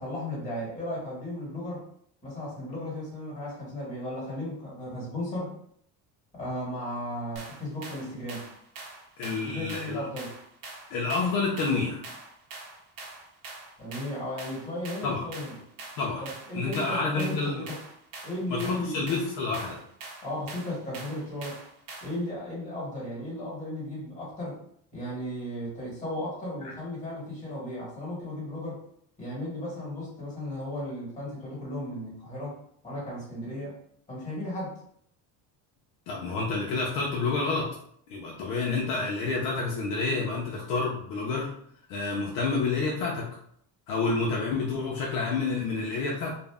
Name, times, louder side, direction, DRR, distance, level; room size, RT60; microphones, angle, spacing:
voice 1, 0.0-1.8 2.2-5.5 6.3-8.5 9.4-10.3 13.8-15.6 16.2-17.8 18.2-19.2 20.2-21.6 22.0-24.6 24.9-28.8 29.2-32.6 32.8-33.7 34.1-34.8, left 1 dB, 20° left, -6 dB, 1.4 m, -35 dB
sound 1, 7.4-22.3, right 3 dB, 65° right, 0.9 m, -44 dB
voice 2, 9.2-10.0 10.9-12.1 15.0-15.2 16.0-16.3 16.5-17.6 18.5-19.8 36.1-37.8 38.1-41.5 41.9-43.3 43.9-46.3, left 3 dB, 60° left, -2 dB, 0.6 m, -29 dB
2.5 x 2.0 x 3.4 m, 0.67 s
cardioid pair, 165°, 37 cm